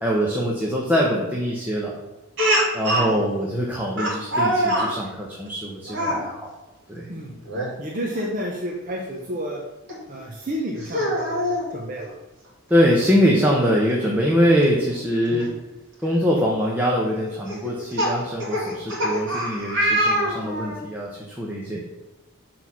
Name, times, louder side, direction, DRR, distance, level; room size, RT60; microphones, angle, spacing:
voice 1, 0.0-1.9 2.7-6.6 6.9-7.1 12.7-15.5 16.0-21.8, equal, 10° right, -3 dB, 0.9 m, -23 dB
Speech, 2.4-3.1 4.0-4.9 5.9-6.2 7.4-7.7 8.1-8.2 9.9-10.0 10.8-11.7 13.0-13.1 13.4-13.5 15.4-15.5 16.1-16.4 17.5-20.8, equal, 60° right, 2.7 m, -24 dB
voice 2, 7.8-9.6 10.1-12.1 15.3-15.5, equal, 40° right, -1 dB, 0.8 m, -31 dB
6.3 x 4.3 x 6.1 m, 1.1 s
head